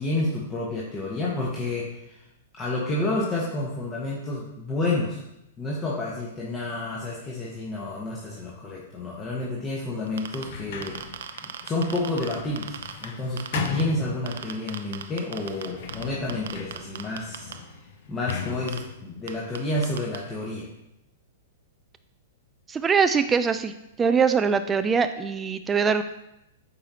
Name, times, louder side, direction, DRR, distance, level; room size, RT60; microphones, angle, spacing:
voice 1, 0.0-2.3 2.5-5.2 5.6-11.0 11.4-17.5 18.1-20.7, left 2 dB, 20° left, -5 dB, 1.3 m, -30 dB
sound 1, 10.1-10.4 10.8-13.1 13.4-13.8 14.3-16.0 16.3-17.5 18.3-18.4 18.7-18.8 19.3-19.4 19.6-19.7 19.8-20.2, right 9 dB, 65° right, 0.6 m, -35 dB
Sliding door, 10.2-14.7 15.4-20.2, left 6 dB, 55° left, 0.8 m, -37 dB
voice 2, 22.7-23.7 24.0-26.0, right 6 dB, 15° right, 9 dB, 0.3 m, -22 dB
8.5 x 4.7 x 2.8 m, 0.84 s
figure-of-eight pair, 105°, 0 cm